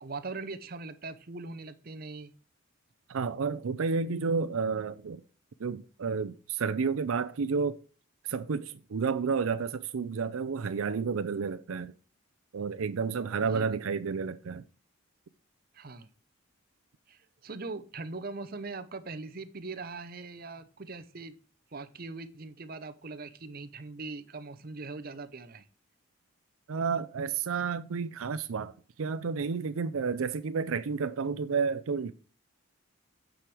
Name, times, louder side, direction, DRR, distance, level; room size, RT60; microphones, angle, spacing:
voice 1, 0.0-2.3 13.4-13.8 15.7-16.1 17.1-21.3 21.7-25.6, right 3 dB, 45° right, 0.7 m, -41 dB
voice 2, 3.1-5.2 5.6-7.8 8.2-11.9 12.5-14.6 26.7-28.7 29.0-32.1, right 5 dB, 85° right, 0.5 m, -31 dB
8.9 x 5.0 x 6.1 m
head